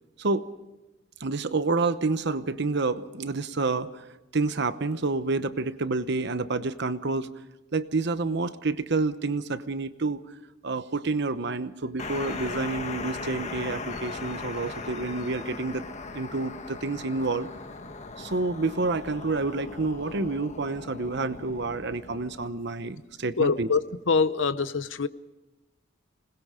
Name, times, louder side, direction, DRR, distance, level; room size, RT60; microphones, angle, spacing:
voice 1, 1.2-4.0 4.3-7.3 7.7-10.2 10.6-15.9 16.1-17.5 18.2-23.7, right 3 dB, 60° right, 1.0 m, -28 dB
sound 1, 12.0-22.5, left 3 dB, 40° left, 1.3 m, -38 dB
voice 2, 23.4-25.1, left 4 dB, 75° left, 0.8 m, -24 dB
26.5 x 20.5 x 5.1 m
head